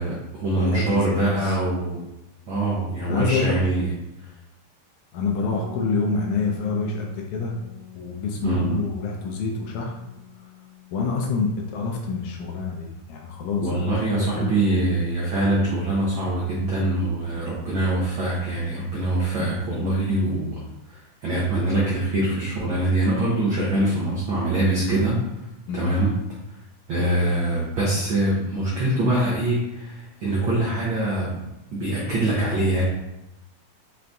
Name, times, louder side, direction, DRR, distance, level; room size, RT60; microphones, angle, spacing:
voice 1, 0.0-2.0 2.5-3.9 8.4-8.8 13.6-20.6 20.9-25.2 25.7-26.1 26.9-31.4 31.7-32.8, right 1 dB, 80° right, -7 dB, 1.1 m, -23 dB
voice 2, 0.6-1.6 3.1-3.6 5.1-7.5 8.0-10.0 10.9-14.6 17.3-17.5 25.7-25.9, left 4 dB, 80° left, 0 dB, 1.8 m, -27 dB
sound 1, 5.5-15.2, left 6 dB, 60° right, 2.5 m, -46 dB
5.7 x 2.5 x 3.4 m, 0.93 s
omnidirectional pair, 3.6 m